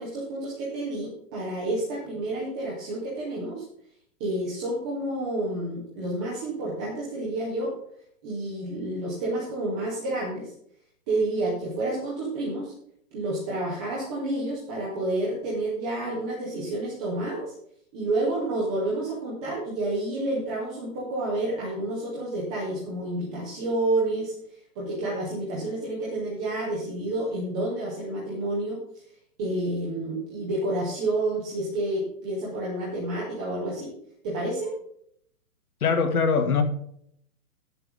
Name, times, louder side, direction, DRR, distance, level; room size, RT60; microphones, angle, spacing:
voice 1, 0.0-3.6 4.2-7.7 8.2-10.5 11.1-12.7 13.1-17.5 17.9-24.3 24.8-28.8 29.4-33.9 34.2-34.7, right 2 dB, 5° right, -5 dB, 0.4 m, -29 dB
voice 2, 35.8-36.6, left 5 dB, 85° left, 6 dB, 2.4 m, -22 dB
15.0 x 6.9 x 3.7 m, 0.67 s
hypercardioid pair, 155°, 43 cm